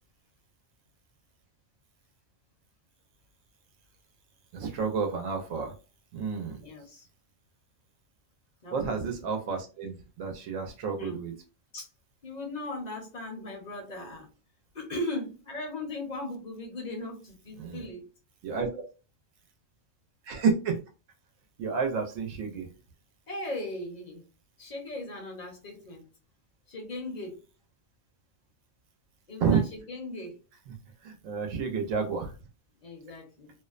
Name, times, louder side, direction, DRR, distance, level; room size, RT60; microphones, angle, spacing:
voice 1, 4.5-5.7 6.1-6.6 8.7-11.3 17.6-17.9 18.4-18.8 20.2-20.8 21.6-22.7 29.4-29.6 31.0-32.3, right 5 dB, 90° right, 4 dB, 1.0 m, -30 dB
voice 2, 6.6-7.1 8.6-9.1 11.0-11.2 11.7-11.9 12.2-14.3 14.7-18.0 23.3-24.2 24.6-26.0 26.7-27.4 29.3-30.4 32.8-33.5, left 2 dB, 45° left, 2 dB, 0.7 m, -38 dB
2.6 x 2.0 x 2.4 m, 0.33 s
omnidirectional pair, 1.3 m